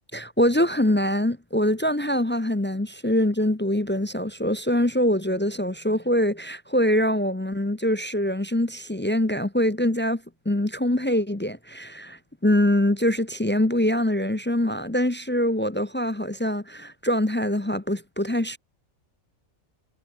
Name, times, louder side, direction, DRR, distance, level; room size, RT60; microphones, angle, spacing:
voice 1, 0.1-18.6, left 1 dB, 15° left, 0.4 m, -24 dB
omnidirectional pair, 1.4 m